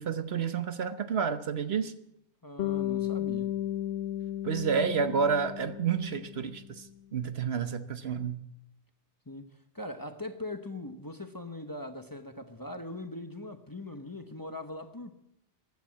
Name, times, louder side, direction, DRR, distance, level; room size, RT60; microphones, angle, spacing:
voice 1, 0.0-1.9 4.4-6.8 7.1-8.4, right 6 dB, 60° right, 1.1 m, -30 dB
voice 2, 2.4-3.6 9.3-15.1, left 1 dB, 20° left, 0.9 m, -41 dB
Bass guitar, 2.6-6.9, left 12 dB, 65° left, 0.9 m, -34 dB
16.0 x 10.5 x 7.5 m
omnidirectional pair, 1.2 m